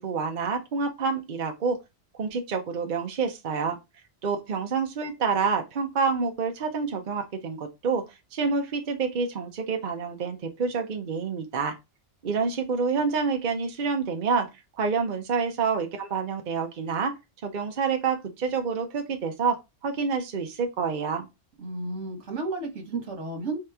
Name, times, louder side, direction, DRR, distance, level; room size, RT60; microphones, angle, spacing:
voice 1, 0.0-1.8 2.1-3.8 4.2-8.0 8.3-11.8 12.2-14.5 14.8-17.1 17.4-21.3, right 5 dB, 45° right, 0.8 m, -28 dB
voice 2, 21.6-23.6, right 3 dB, 75° right, 1.5 m, -32 dB
3.7 x 3.1 x 3.4 m
omnidirectional pair, 1.2 m